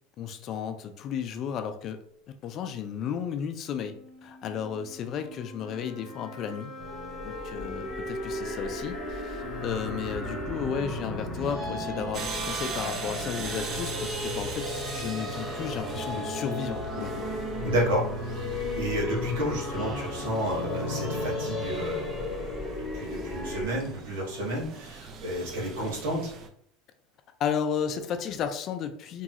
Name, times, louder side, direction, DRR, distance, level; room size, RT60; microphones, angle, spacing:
voice 1, 0.2-2.0 2.4-4.0 4.2-6.7 7.2-17.3 27.4-29.2, left 7 dB, 40° left, 8 dB, 0.3 m, -33 dB
sound 1, 3.7-13.1, left 3 dB, 20° left, 0.8 m, -45 dB
sound 2, 6.8-23.7, left 1 dB, 20° right, 0.9 m, -34 dB
sound 3, 12.1-26.5, right 6 dB, 40° right, 0.4 m, -42 dB
voice 2, 17.6-26.3, right 1 dB, 85° right, -3 dB, 1.4 m, -31 dB
3.0 x 2.3 x 2.8 m, 0.68 s
supercardioid pair, 130°, 0 cm